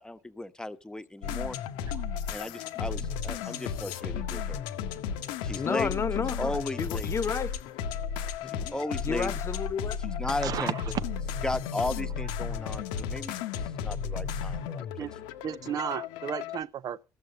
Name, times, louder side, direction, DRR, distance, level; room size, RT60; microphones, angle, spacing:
voice 1, 0.0-1.6 2.3-4.6 5.4-5.9 6.4-7.1 8.5-9.3 10.0-10.7 11.4-15.1, left 1 dB, 10° left, 1.1 m, -35 dB
sound 1, 1.2-16.6, left 7 dB, 70° left, 0.8 m, -34 dB
voice 2, 5.5-7.6 8.4-8.7 9.0-10.0, left 6 dB, 35° left, 0.6 m, -32 dB
voice 3, 10.4-11.0 15.0-15.1 15.4-17.0, right 9 dB, 50° right, 0.6 m, -33 dB
14.5 x 7.6 x 6.5 m
figure-of-eight pair, 50°, 8 cm